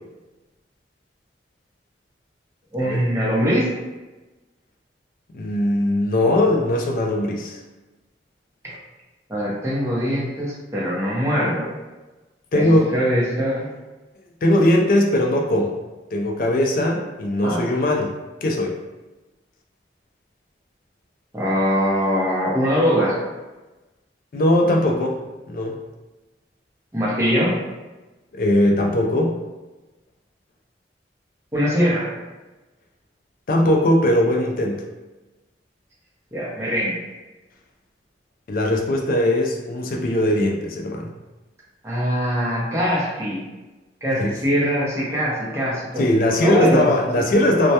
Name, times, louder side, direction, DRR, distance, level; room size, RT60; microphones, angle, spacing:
voice 1, 2.7-3.7 9.3-11.7 12.5-13.7 17.4-17.7 21.3-23.2 26.9-27.6 31.5-32.1 36.3-37.0 41.8-43.4 44.0-46.0 46.4-47.2, equal, 15° right, -7 dB, 0.6 m, -22 dB
voice 2, 5.3-7.6 12.5-12.9 14.4-15.8 16.1-18.8 24.3-25.2 25.5-25.8 28.3-29.4 33.5-34.9 38.5-41.1 44.2-44.4 46.0-47.7, left 1 dB, 50° left, 1 dB, 0.3 m, -20 dB
2.2 x 2.1 x 2.8 m, 1.1 s
head